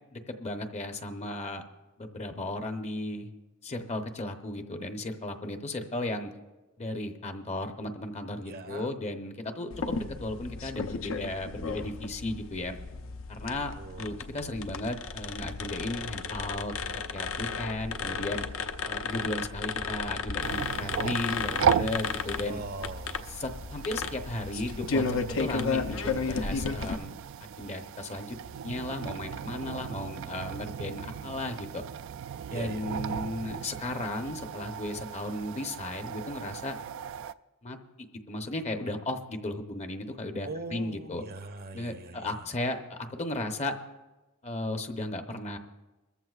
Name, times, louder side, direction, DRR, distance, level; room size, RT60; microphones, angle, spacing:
voice 1, 0.1-1.6 2.0-3.3 3.6-6.3 6.8-12.8 13.3-16.7 17.1-18.5 18.8-22.6 23.3-28.4 28.6-31.8 32.5-36.8 37.6-37.8 38.3-41.2 41.7-43.7 44.4-45.6, left 2 dB, 30° left, 6 dB, 0.8 m, -35 dB
voice 2, 8.5-9.0 13.8-14.2 22.4-23.2 32.5-32.9 40.4-42.4, right 3 dB, 45° right, 8 dB, 0.7 m, -41 dB
sound 1, 9.7-27.0, left 4 dB, 65° left, 0.7 m, -34 dB
sound 2, 20.4-37.3, right 8 dB, 60° right, 0.3 m, -36 dB
22.0 x 14.5 x 2.4 m, 1.1 s
head